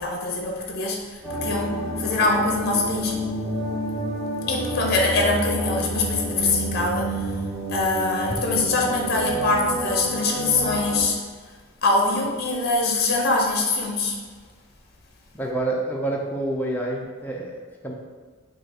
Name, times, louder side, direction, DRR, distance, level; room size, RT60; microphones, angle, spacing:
voice 1, 0.0-3.2 4.5-7.4 7.7-11.2 11.8-14.2, left 3 dB, 50° left, 0 dB, 0.7 m, -23 dB
sound 1, 1.2-11.0, right 1 dB, 15° right, 1.0 m, -29 dB
voice 2, 15.3-17.9, right 2 dB, 10° left, -2 dB, 0.5 m, -28 dB
4.9 x 2.4 x 4.4 m, 1.5 s
head